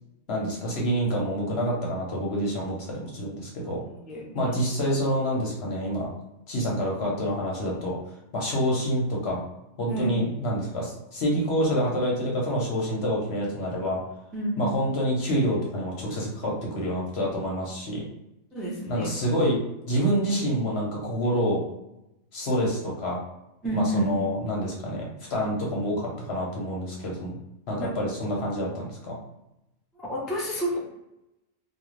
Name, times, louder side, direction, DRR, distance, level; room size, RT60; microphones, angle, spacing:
voice 1, 0.3-3.8 4.3-6.1 6.5-8.0 8.3-9.4 9.8-14.0 14.6-18.0 18.9-19.6 19.8-21.6 22.3-23.2 23.7-25.0 25.3-27.3 27.7-29.2, equal, 55° left, -2 dB, 0.8 m, -27 dB
voice 2, 3.6-4.7 9.9-10.2 14.3-14.7 18.5-19.2 23.6-24.2 27.8-27.9 29.9-30.8, right 1 dB, ahead, -5 dB, 0.3 m, -30 dB
2.4 x 2.4 x 3.1 m, 0.88 s
omnidirectional pair, 1.5 m